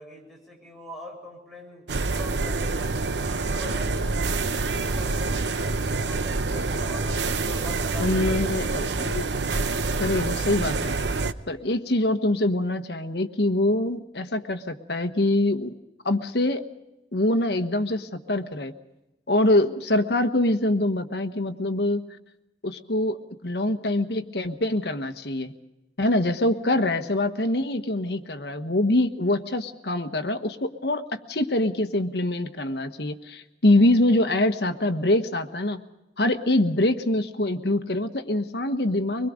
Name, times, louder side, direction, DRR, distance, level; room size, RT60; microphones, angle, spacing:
voice 1, 0.0-2.9 3.5-8.4, equal, ahead, -2 dB, 7.3 m, -42 dB
sound 1, 1.9-11.3, right 3 dB, 80° right, 0.9 m, -27 dB
voice 2, 8.0-9.3 10.0-10.9 11.5-15.7 16.0-16.6 17.1-18.7 19.3-22.0 22.6-23.2 23.4-25.5 26.0-35.8 36.2-39.3, left 1 dB, 65° left, 8 dB, 1.3 m, -24 dB
24.5 x 21.5 x 5.1 m, 0.99 s
head